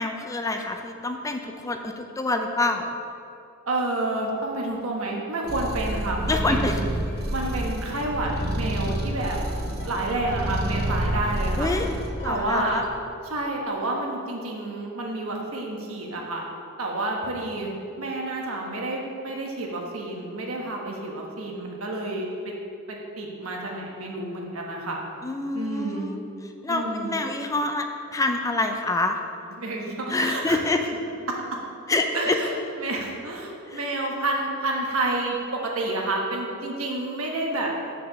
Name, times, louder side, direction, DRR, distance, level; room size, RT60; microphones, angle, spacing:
voice 1, 0.0-2.9 6.2-6.8 11.6-11.9 12.2-12.8 25.2-26.2 26.6-29.2 30.1-30.8 31.9-32.4 33.7-33.8, left 2 dB, 15° left, 5 dB, 0.4 m, -26 dB
voice 2, 3.7-6.9 7.3-9.4 9.8-11.7 12.2-12.8 13.2-16.4 16.8-17.7 18.0-22.5 22.9-25.0 25.5-26.1 26.7-27.2 29.6-30.6 32.1-37.7, right 2 dB, 85° right, -1 dB, 1.3 m, -29 dB
sound 1, 5.5-12.1, right 1 dB, 50° right, 0.8 m, -29 dB
sound 2, 7.1-12.9, left 1 dB, 55° left, 1.0 m, -43 dB
6.3 x 4.9 x 6.7 m, 2.6 s
head